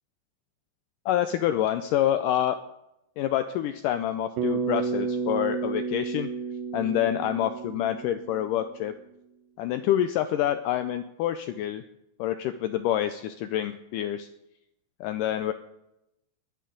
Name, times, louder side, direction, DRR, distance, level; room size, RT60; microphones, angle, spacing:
voice 1, 1.1-2.6 3.2-6.3 6.7-8.9 9.6-11.8 12.2-14.3 15.0-15.5, left 11 dB, 85° left, 9 dB, 1.9 m, -27 dB
Bass guitar, 4.4-8.7, right 5 dB, 75° right, 2.5 m, -31 dB
21.0 x 10.0 x 3.9 m, 0.85 s
omnidirectional pair, 4.4 m